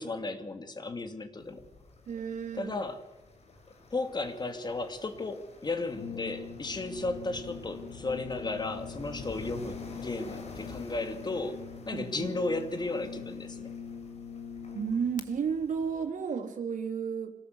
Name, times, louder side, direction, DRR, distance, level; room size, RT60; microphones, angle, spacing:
voice 1, 0.0-1.7 2.5-3.0 3.9-13.7, left 3 dB, 35° left, 7 dB, 2.5 m, -34 dB
sound 1, 1.4-16.0, left 3 dB, 55° left, 6.7 m, -49 dB
voice 2, 2.1-2.8 11.9-12.3 14.7-17.3, right 6 dB, 80° right, 5 dB, 3.4 m, -32 dB
Brass instrument, 5.9-15.3, left 6 dB, 85° left, 2.0 m, -44 dB
25.5 x 18.5 x 8.0 m, 0.94 s
wide cardioid pair, 115°, 13 cm